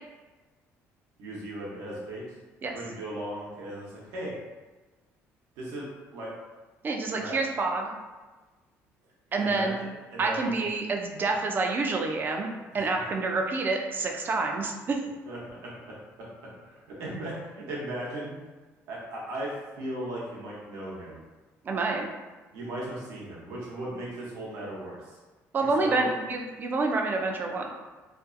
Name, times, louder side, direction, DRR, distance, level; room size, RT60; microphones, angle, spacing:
voice 1, 1.2-2.2 2.7-4.3 5.6-6.3 7.1-7.4 9.4-9.7 10.1-10.7 12.7-12.8 15.3-16.3 16.6-18.4 18.9-21.2 22.5-25.2 25.8-26.1, right 1 dB, 90° right, -5 dB, 0.8 m, -37 dB
voice 2, 6.8-7.9 9.3-9.8 10.2-15.0 21.6-22.1 25.5-27.7, right 3 dB, 35° right, 2 dB, 0.4 m, -28 dB
2.5 x 2.3 x 2.5 m, 1.2 s
cardioid pair, 110°, 6 cm